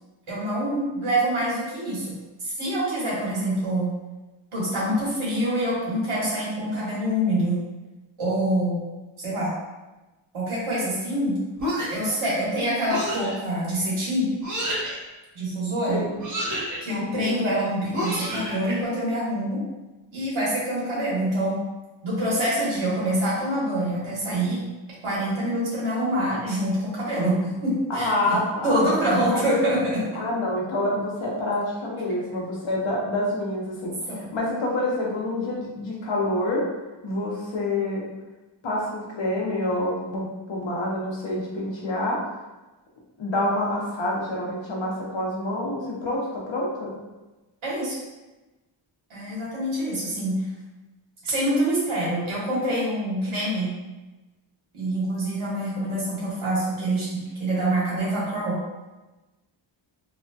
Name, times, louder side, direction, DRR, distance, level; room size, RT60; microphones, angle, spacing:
voice 1, 0.3-2.1 2.4-3.9 4.5-7.6 8.2-8.9 9.2-9.5 10.3-11.4 11.9-14.3 15.3-16.0 16.8-19.6 20.1-21.6 22.0-24.6 25.0-28.4 28.6-30.1 34.1-34.2 47.6-48.0 49.1-50.3 51.2-53.7 54.7-58.6, right 1 dB, 85° right, -7 dB, 1.2 m, -25 dB
sound 1, 11.6-12.1 12.9-13.3 14.4-15.0 16.2-16.8 17.9-18.7, equal, 40° right, 0.8 m, -29 dB
voice 2, 16.9-17.4 27.9-29.5 30.2-36.6 37.0-38.0 38.6-42.2 43.2-46.9, left 1 dB, 70° left, -3 dB, 0.8 m, -27 dB
2.8 x 2.1 x 2.7 m, 1.1 s
wide cardioid pair, 120°, 48 cm